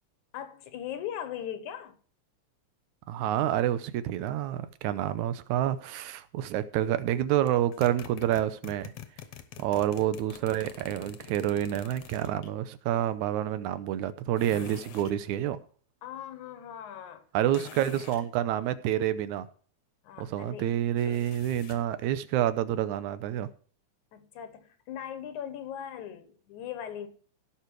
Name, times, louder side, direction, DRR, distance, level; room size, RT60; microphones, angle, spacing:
voice 1, 0.3-2.0 9.5-10.2 16.0-17.3 20.0-20.7 21.0-21.3 24.1-27.1, left 9 dB, 90° left, 2.7 m, -40 dB
voice 2, 3.1-8.9 9.6-15.6 17.3-19.5 20.2-23.5, right 12 dB, 90° right, 2.2 m, -28 dB
sound 1, 7.5-12.5 14.4-15.2 17.5-18.3 21.0-21.9, left 10 dB, 65° left, 1.9 m, -46 dB
17.0 x 5.8 x 4.6 m
omnidirectional pair, 3.3 m